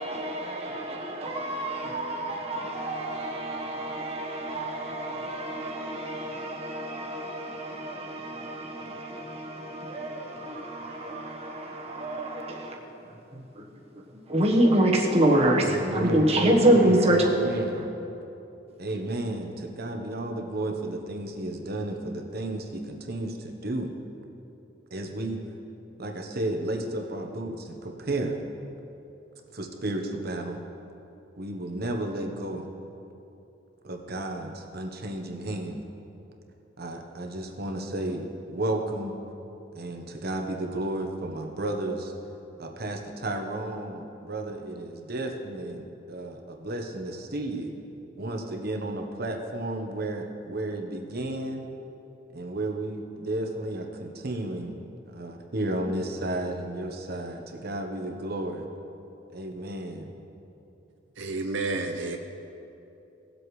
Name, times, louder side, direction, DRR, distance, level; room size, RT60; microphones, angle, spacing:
voice 1, 0.0-12.8 13.0-13.6 14.3-17.5, right 1 dB, 35° right, 1.3 m, -26 dB
voice 2, 15.6-17.9 18.8-23.9 24.9-25.4 26.0-28.4 29.5-30.6 31.4-32.7 33.8-35.8 36.8-39.1 39.7-42.1 42.6-47.7 48.2-51.6 52.3-54.7 55.1-58.6 59.3-60.1, right 1 dB, 55° right, 1.1 m, -32 dB
voice 3, 61.2-62.2, right 3 dB, 90° right, 0.7 m, -30 dB
18.5 x 7.8 x 3.2 m
head